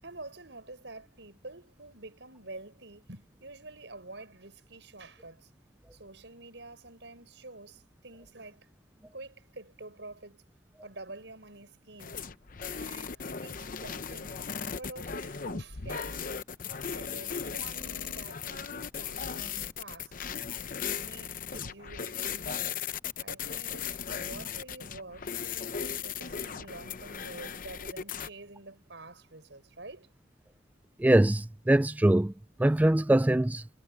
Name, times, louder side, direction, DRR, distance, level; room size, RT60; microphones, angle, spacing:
voice 1, 0.0-5.5 5.9-8.7 9.1-10.4 10.8-12.3 12.7-14.4 14.7-16.3 16.9-20.2 20.9-22.8 23.2-25.3 25.8-30.1, right 2 dB, 80° right, 6.3 m, -48 dB
sound 1, 12.0-28.3, left 7 dB, 50° left, 0.8 m, -37 dB
voice 2, 31.0-32.3 32.6-33.6, right 1 dB, 10° right, 0.3 m, -23 dB
head